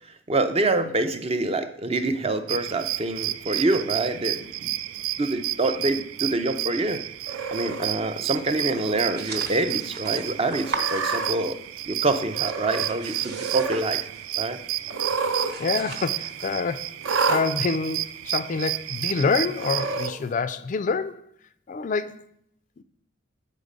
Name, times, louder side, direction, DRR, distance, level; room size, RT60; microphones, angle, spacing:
voice 1, 0.3-4.8 5.2-7.0 7.5-11.6 11.9-14.1 14.4-14.6, right 2 dB, 30° right, 0.5 m, -26 dB
sound 1, 2.5-20.1, right 14 dB, 90° right, 0.3 m, -32 dB
Cat, 7.3-7.9 8.6-9.0 9.4-9.5 10.6-11.3 12.3-13.0 13.2-13.8 14.9-15.5 15.8-15.9 17.0-17.4 18.3-18.4 19.5-20.1, right 4 dB, 75° right, 0.9 m, -28 dB
sound 2, 9.2-11.7 11.9-14.4 14.7-14.9 15.2-16.6, right 4 dB, 55° right, 1.1 m, -38 dB
voice 2, 15.6-21.2 21.7-22.3 22.8-22.9, left 4 dB, 40° left, 0.3 m, -27 dB
8.3 x 4.1 x 5.1 m
head